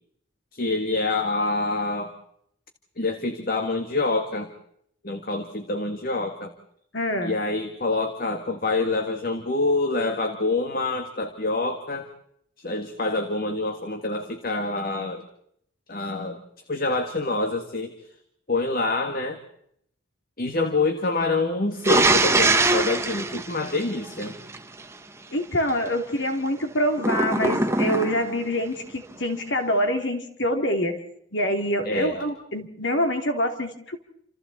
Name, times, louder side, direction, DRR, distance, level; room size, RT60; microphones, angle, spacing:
voice 1, 0.5-2.1 3.0-4.5 5.0-6.5 7.2-12.1 12.6-15.2 15.9-16.4 16.7-17.9 18.5-19.4 20.4-24.4 31.8-32.2, left 3 dB, 50° left, 6 dB, 1.7 m, -26 dB
voice 2, 6.9-7.4 25.3-31.0 31.3-34.0, equal, 65° left, 5 dB, 3.0 m, -25 dB
sound 1, 21.8-24.6 27.0-28.4, right 2 dB, 15° right, 1.0 m, -22 dB
29.0 x 27.5 x 4.2 m, 0.70 s
head